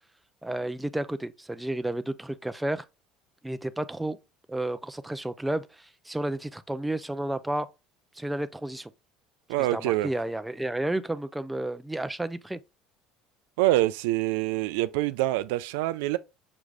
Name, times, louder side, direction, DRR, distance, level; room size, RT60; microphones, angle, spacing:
voice 1, 0.4-2.8 3.4-4.2 4.5-7.7 8.2-8.9 9.6-12.6, right 1 dB, 5° right, 0.4 m, -31 dB
voice 2, 9.5-10.1 13.6-16.2, right 16 dB, 90° right, 0.3 m, -25 dB
6.0 x 2.4 x 3.3 m
cardioid pair, 130°, 0 cm